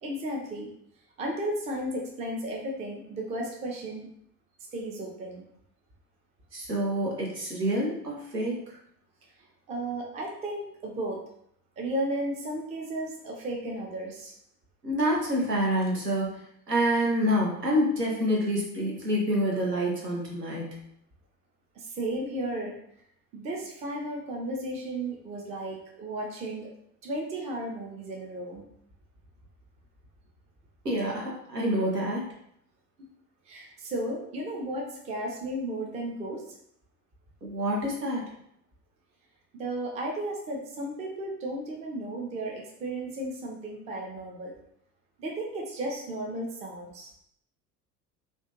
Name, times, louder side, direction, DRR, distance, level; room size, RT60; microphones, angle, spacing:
voice 1, 0.0-0.7 1.2-4.1 4.7-5.4 9.7-11.2 11.8-14.3 21.8-22.8 23.3-26.7 27.0-28.6 33.5-36.4 39.5-44.5 45.2-47.1, right 1 dB, 15° right, 0 dB, 0.4 m, -34 dB
voice 2, 6.5-8.6 14.8-16.4 16.7-20.8 30.8-32.2 37.4-38.2, equal, 90° right, -3 dB, 0.7 m, -27 dB
2.4 x 2.2 x 2.8 m, 0.71 s
figure-of-eight pair, 70°, 47 cm